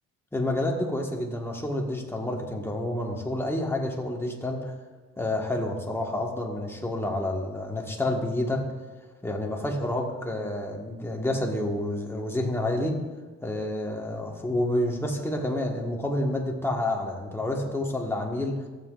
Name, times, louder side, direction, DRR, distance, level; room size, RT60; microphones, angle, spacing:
voice 1, 0.3-4.7 5.2-8.7 9.2-13.0 13.4-18.6, left 1 dB, 10° left, 0 dB, 1.6 m, -29 dB
14.5 x 7.6 x 2.5 m, 1.3 s
cardioid pair, 90°, 30 cm